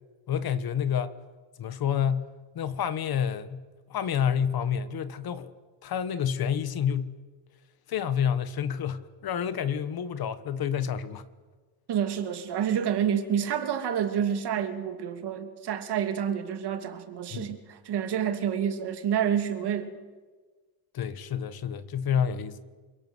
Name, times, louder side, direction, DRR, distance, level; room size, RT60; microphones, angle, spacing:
voice 1, 0.3-1.2 1.6-5.5 5.8-7.2 7.9-11.2 17.3-17.5 20.9-22.6, left 8 dB, 50° left, 1.5 m, -29 dB
voice 2, 11.9-19.9, right 8 dB, 55° right, 2.8 m, -28 dB
29.0 x 23.5 x 8.1 m
cardioid pair, 150°, 46 cm